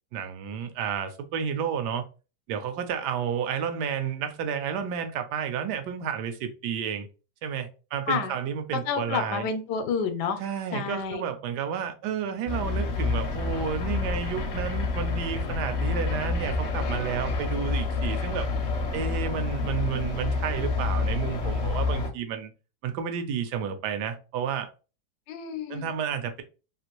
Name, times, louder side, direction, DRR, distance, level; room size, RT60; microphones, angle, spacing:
voice 1, 0.1-2.0 2.5-7.1 7.4-9.5 10.4-18.5 18.9-22.5 22.8-24.7 25.7-26.4, right 7 dB, 80° right, 1.1 m, -31 dB
voice 2, 8.7-10.4 10.7-11.2 25.3-25.9, left 6 dB, 80° left, 1.2 m, -29 dB
sound 1, 12.5-22.1, left 3 dB, 60° left, 0.7 m, -28 dB
3.0 x 2.5 x 2.9 m
omnidirectional pair, 1.8 m